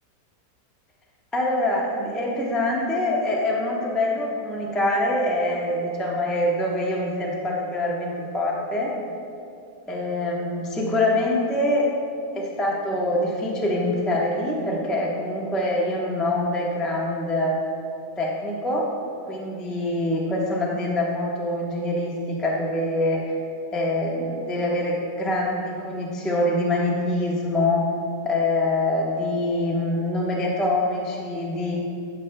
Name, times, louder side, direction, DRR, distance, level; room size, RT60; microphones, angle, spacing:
voice 1, 1.3-8.9 9.9-11.9 12.3-17.6 18.2-18.9 19.3-23.3 23.7-27.8 28.2-31.7, left 1 dB, ahead, -4 dB, 0.4 m, -24 dB
12.5 x 6.8 x 2.2 m, 2.5 s
omnidirectional pair, 1.9 m